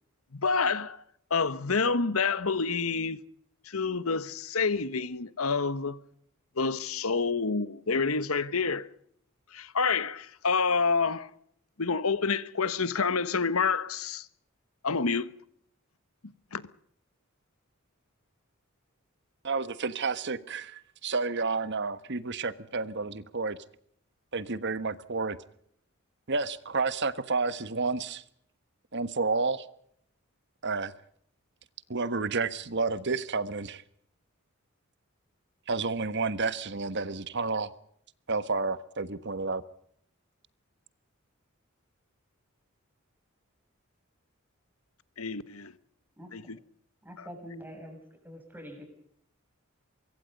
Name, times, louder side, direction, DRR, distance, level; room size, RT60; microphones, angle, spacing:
voice 1, 0.3-1.0 1.3-3.2 3.7-6.0 6.6-8.9 9.5-11.3 11.8-14.3 14.8-15.3 16.5-16.6 45.2-45.7 46.3-46.6, left 4 dB, 85° left, 1.2 m, -28 dB
voice 2, 19.4-23.6 24.3-25.4 26.3-28.2 28.9-29.6 30.6-30.9 31.9-33.8 35.7-37.7 38.3-39.6, right 4 dB, 55° right, 1.3 m, -30 dB
voice 3, 47.0-48.0 48.2-48.8, equal, 10° right, 7.6 m, -44 dB
24.5 x 23.5 x 5.3 m
head